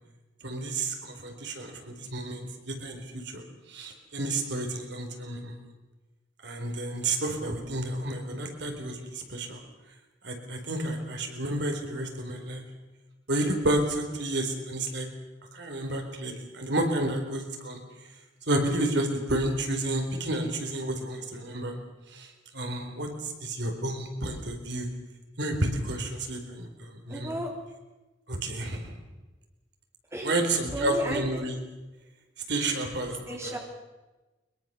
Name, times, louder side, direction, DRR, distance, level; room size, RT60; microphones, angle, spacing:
voice 1, 0.4-5.6 6.4-9.6 10.2-12.6 13.3-15.1 15.5-17.8 18.5-21.8 22.1-24.9 25.4-27.4 28.3-29.0 30.2-31.5 32.5-33.6, right 1 dB, 65° right, 4 dB, 4.2 m, -31 dB
voice 2, 27.1-27.5 30.1-30.4 30.7-31.4 33.3-33.6, right 1 dB, 15° right, 1 dB, 3.5 m, -34 dB
23.5 x 22.0 x 6.9 m, 1.1 s
head